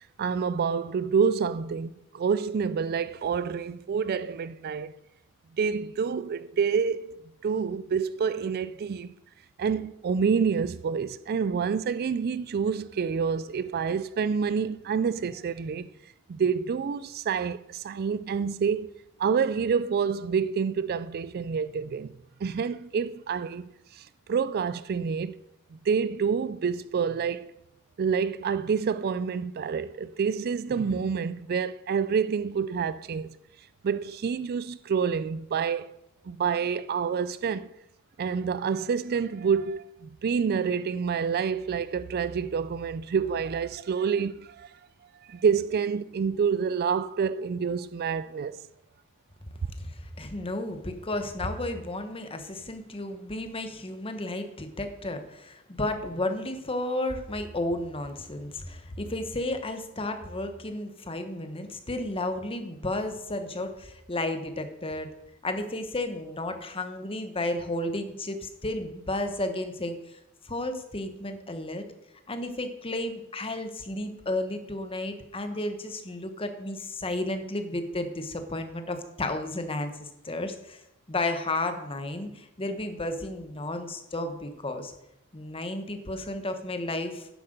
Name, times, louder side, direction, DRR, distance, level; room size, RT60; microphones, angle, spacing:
voice 1, 0.2-4.9 5.6-9.1 9.6-15.9 16.3-18.9 19.2-22.1 22.4-25.4 25.9-27.5 28.0-33.3 33.8-35.9 36.3-37.7 38.2-44.7 45.3-48.6, right 6 dB, 45° right, 0.3 m, -28 dB
voice 2, 49.7-65.1 65.4-70.2 70.4-71.8 72.3-80.8 81.1-84.9 85.3-87.3, left 2 dB, 25° left, 1.2 m, -33 dB
9.9 x 7.7 x 6.6 m
head